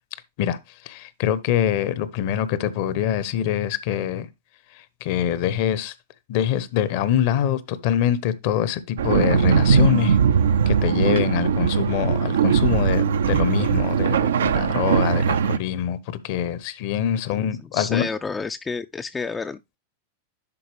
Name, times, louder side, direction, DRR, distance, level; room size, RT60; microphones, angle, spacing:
voice 1, 0.4-4.3 4.7-5.9 6.3-10.2 10.7-18.1, left 10 dB, 50° left, 0.8 m, -24 dB
sound 1, 9.0-15.6, right 7 dB, 65° right, 0.4 m, -20 dB
voice 2, 17.7-19.8, left 4 dB, 15° left, 0.4 m, -30 dB
11.0 x 4.4 x 3.2 m
figure-of-eight pair, 90°, 0 cm